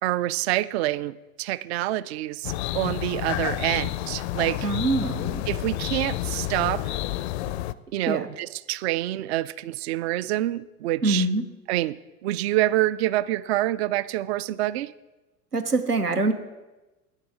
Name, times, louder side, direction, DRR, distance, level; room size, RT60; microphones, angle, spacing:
voice 1, 0.0-4.7 5.5-7.0 7.9-11.3 11.7-14.9, right 15 dB, 45° right, 19 dB, 0.5 m, -27 dB
sound 1, 2.4-7.7, left 15 dB, 50° left, 0.5 m, -30 dB
voice 2, 4.6-5.4 8.1-8.2 11.0-11.4 15.5-16.3, right 2 dB, 90° right, 8 dB, 1.1 m, -24 dB
11.0 x 9.8 x 4.7 m, 1.1 s
figure-of-eight pair, 80°, 45 cm